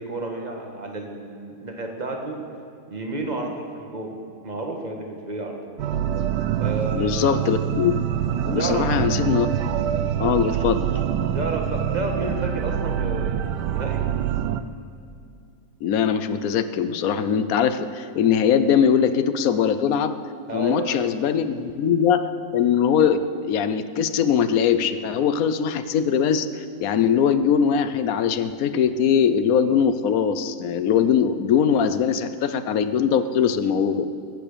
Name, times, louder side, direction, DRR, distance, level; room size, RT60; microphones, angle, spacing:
voice 1, 0.0-2.4 2.9-4.2 4.4-5.8 6.6-7.3 8.5-8.9 11.3-14.0 20.5-21.1, right 2 dB, 25° right, 2 dB, 1.7 m, -31 dB
sound 1, 5.8-14.6, right 9 dB, 85° right, 1.3 m, -25 dB
voice 2, 6.9-8.0 8.4-9.5 10.2-10.9 15.8-20.1 20.5-34.1, left 7 dB, 65° left, 11 dB, 1.1 m, -21 dB
20.0 x 8.2 x 6.8 m, 2.5 s
omnidirectional pair, 1.8 m